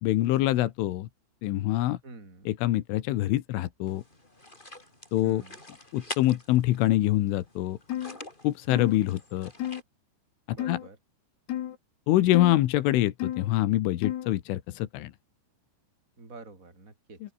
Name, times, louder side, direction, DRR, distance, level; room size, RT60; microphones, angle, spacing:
voice 1, 0.0-1.1 1.4-2.0 2.5-4.0 5.1-5.4 5.9-7.8 8.4-9.5 10.5-10.8 12.1-15.1, left 15 dB, 80° left, 3.8 m, -25 dB
voice 2, 2.0-2.5 5.2-5.7 10.5-11.0 16.2-17.2, right 3 dB, 15° right, 6.0 m, -47 dB
sound 1, 3.9-9.8, left 2 dB, 10° left, 4.1 m, -46 dB
sound 2, 7.9-8.2 8.7-9.0 9.6-9.8 10.6-10.9 11.5-11.8 12.3-12.6 13.2-13.5 14.0-14.3, left 12 dB, 65° left, 3.5 m, -32 dB
open air
omnidirectional pair, 5.6 m